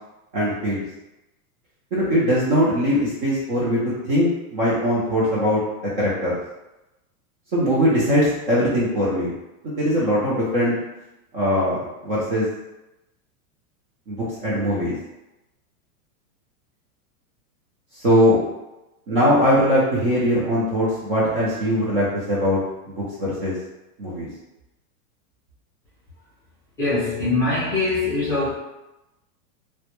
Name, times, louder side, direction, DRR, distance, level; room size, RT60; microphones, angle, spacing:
voice 1, 0.3-0.8 1.9-3.8 4.1-5.6 6.0-6.4 7.5-9.3 9.6-10.7 11.3-12.5 14.1-14.9 18.0-18.4 19.1-22.6 22.9-23.5 24.0-24.3, equal, 35° right, -8 dB, 0.5 m, -21 dB
voice 2, 26.8-28.5, left 3 dB, 5° left, -11 dB, 0.6 m, -22 dB
2.1 x 2.1 x 2.9 m, 0.97 s
supercardioid pair, 170°, 45 cm